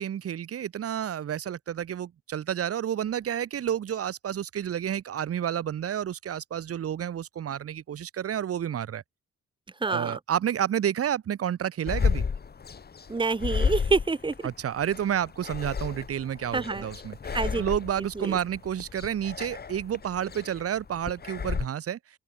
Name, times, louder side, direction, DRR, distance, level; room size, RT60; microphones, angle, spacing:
voice 1, 0.0-9.0 9.8-12.3 14.4-17.2 17.6-22.0, right 9 dB, 50° right, 1.2 m, -30 dB
voice 2, 9.8-10.2 13.1-14.5 16.5-16.9 17.3-17.6 18.2-18.4, right 4 dB, 15° right, 0.9 m, -27 dB
sound 1, 11.9-21.7, left 5 dB, 30° left, 1.6 m, -32 dB
open air
cardioid pair, 90°, 30 cm